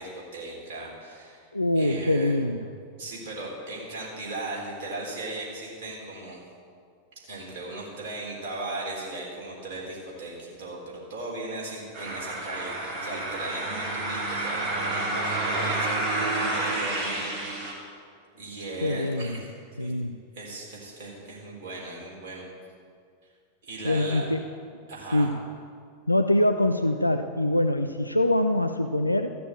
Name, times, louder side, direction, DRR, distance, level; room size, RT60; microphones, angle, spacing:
voice 1, 0.0-1.5 1.7-2.4 3.0-6.4 7.2-17.7 18.3-19.5 19.8-19.9 20.3-22.4 23.6-24.2 24.9-25.3, right 2 dB, 55° right, -3 dB, 4.1 m, -37 dB
voice 2, 1.5-2.7 18.8-19.4 19.8-20.2 23.8-24.4 25.1-25.4 26.1-29.4, left 1 dB, 85° left, 8 dB, 0.5 m, -24 dB
sound 1, 11.9-17.7, right 2 dB, 30° right, 3.6 m, -29 dB
14.5 x 6.8 x 7.9 m, 2.2 s
figure-of-eight pair, 90°, 0 cm